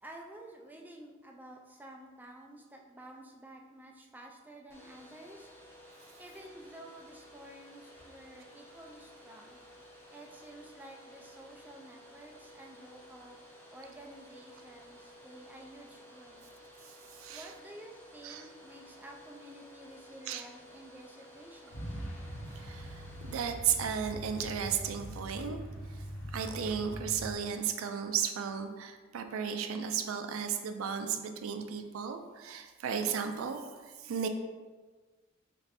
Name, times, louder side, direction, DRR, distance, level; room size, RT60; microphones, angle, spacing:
voice 1, 0.0-5.5 6.2-9.6 10.1-13.4 13.7-16.5 17.3-22.0, right 1 dB, 10° right, 0 dB, 0.3 m, -51 dB
Domestic sounds home sounds, 4.7-23.5, equal, 10° left, 0.7 m, -54 dB
Truck, 21.7-27.3, equal, 65° left, 1.0 m, -42 dB
voice 2, 22.6-22.9 23.2-25.6 26.3-34.3, right 7 dB, 85° right, 7 dB, 0.4 m, -34 dB
3.2 x 2.5 x 4.0 m, 1.3 s
head